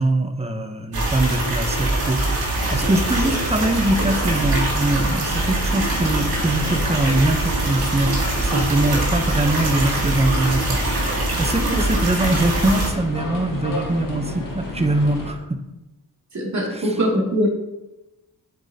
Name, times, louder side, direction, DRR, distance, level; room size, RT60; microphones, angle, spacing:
voice 1, 0.0-2.2 2.7-8.1 8.4-10.9 11.4-15.6 16.7-17.3, right 1 dB, 15° right, 7 dB, 0.8 m, -22 dB
sound 1, 0.9-12.9, right 2 dB, 75° right, 2.3 m, -23 dB
sound 2, 2.5-15.3, left 2 dB, 60° left, 1.8 m, -33 dB
voice 2, 16.3-17.5, equal, 50° right, -3 dB, 2.7 m, -22 dB
8.2 x 8.0 x 2.9 m, 0.98 s
wide cardioid pair, 100°, 37 cm